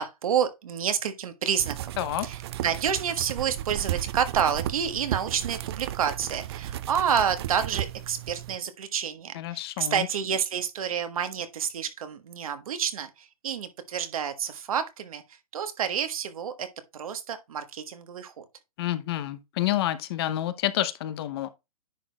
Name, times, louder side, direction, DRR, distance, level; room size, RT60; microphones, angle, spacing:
voice 1, 0.0-1.9 2.2-16.7 16.9-18.4, right 8 dB, 70° right, 1.3 m, -29 dB
sound 1, 1.6-8.6, right 13 dB, 45° right, 0.4 m, -34 dB
voice 2, 2.0-2.3 9.3-10.1 18.8-21.5, left 13 dB, 45° left, 0.7 m, -29 dB
10.0 x 6.0 x 2.3 m
hypercardioid pair, 145°, 19 cm